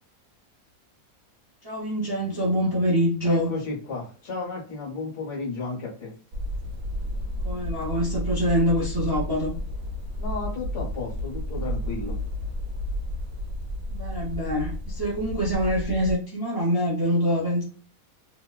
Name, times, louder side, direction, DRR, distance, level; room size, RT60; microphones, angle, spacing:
voice 1, 1.6-3.5 7.4-9.5 13.9-17.6, equal, 25° right, -4 dB, 0.6 m, -25 dB
voice 2, 3.2-6.1 10.2-12.2, left 3 dB, 60° left, -4 dB, 1.3 m, -33 dB
sound 1, 6.3-16.2, left 1 dB, 75° right, 1.0 m, -32 dB
2.9 x 2.1 x 2.3 m, 0.40 s
omnidirectional pair, 1.5 m